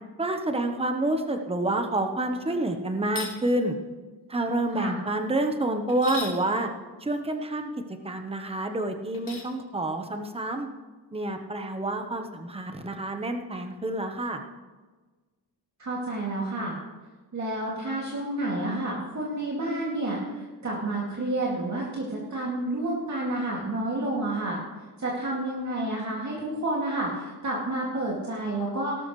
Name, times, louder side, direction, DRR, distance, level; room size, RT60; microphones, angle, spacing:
voice 1, 0.2-3.8 4.3-6.7 7.0-7.7 8.0-10.7 11.1-14.4, right 1 dB, 15° right, 5 dB, 1.1 m, -28 dB
sound 1, 3.0-3.4 5.9-6.4 9.1-9.5, left 4 dB, 50° left, 2.9 m, -36 dB
voice 2, 15.8-16.8 17.3-24.6 25.0-29.0, right 1 dB, 40° right, -5 dB, 2.5 m, -30 dB
17.5 x 13.0 x 3.3 m, 1.3 s
wide cardioid pair, 155°, 42 cm